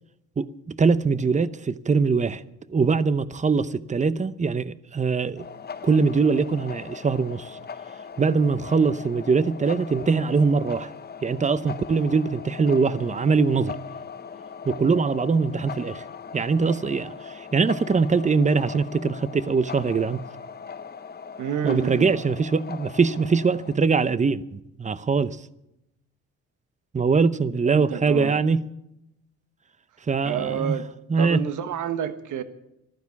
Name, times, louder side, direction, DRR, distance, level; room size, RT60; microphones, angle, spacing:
voice 1, 0.4-2.4 2.7-5.4 5.8-7.6 8.2-10.9 11.2-13.8 14.7-16.0 16.3-20.2 21.6-25.4 26.9-28.6 30.1-30.8 31.1-31.4, right 4 dB, 25° right, 0.7 m, -22 dB
sound 1, 5.4-23.8, left 6 dB, 35° left, 0.9 m, -40 dB
voice 2, 21.4-22.1 27.6-28.3 30.2-30.9 31.2-32.4, right 9 dB, 80° right, 1.3 m, -28 dB
14.5 x 12.0 x 7.0 m
cardioid pair, 90°, 30 cm